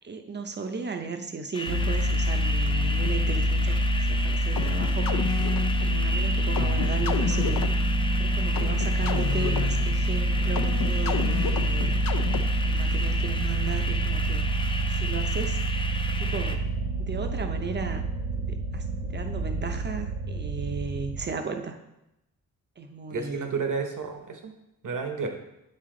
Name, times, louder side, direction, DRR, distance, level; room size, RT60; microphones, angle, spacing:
voice 1, 0.0-3.8 4.1-5.5 6.0-7.6 8.2-12.0 12.6-14.5 14.9-15.7 16.2-16.6 17.0-18.0 18.4-18.8 19.1-21.8 22.8-23.5, right 4 dB, 30° right, 6 dB, 0.6 m, -35 dB
sound 1, 1.5-16.6, left 2 dB, 15° left, 0.4 m, -35 dB
sound 2, 1.7-21.3, right 1 dB, 80° right, 1.4 m, -26 dB
sound 3, 4.6-12.8, left 7 dB, 70° left, 0.5 m, -32 dB
voice 2, 23.1-24.5 24.8-25.3, right 5 dB, 60° right, 5 dB, 1.0 m, -31 dB
8.6 x 4.1 x 3.8 m, 0.89 s
wide cardioid pair, 145°, 35 cm